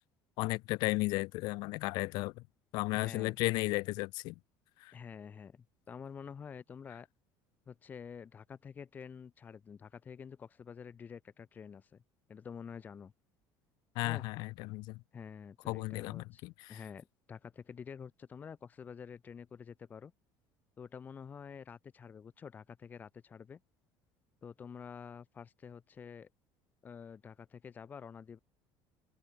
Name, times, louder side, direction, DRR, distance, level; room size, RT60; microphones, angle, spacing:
voice 1, 0.4-2.4 2.7-4.4 4.8-4.9 13.9-15.0 15.7-16.8, left 23 dB, 60° left, 1.4 m, -34 dB
voice 2, 2.9-3.4 4.9-7.1 7.7-12.0 12.3-13.1 14.0-14.3 15.1-16.4 16.7-20.1 20.8-23.6 24.4-26.3 26.8-28.4, left 6 dB, 20° left, 6.6 m, -48 dB
cardioid pair, 175°, 8 cm